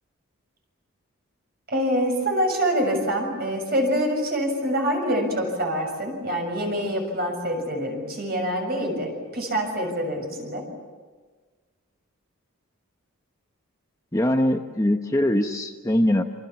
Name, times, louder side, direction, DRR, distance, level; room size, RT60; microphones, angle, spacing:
voice 1, 1.7-10.6, equal, 45° right, 3 dB, 6.9 m, -25 dB
voice 2, 14.1-16.2, left 1 dB, 15° left, 4 dB, 1.0 m, -22 dB
28.0 x 26.5 x 7.2 m, 1.4 s
head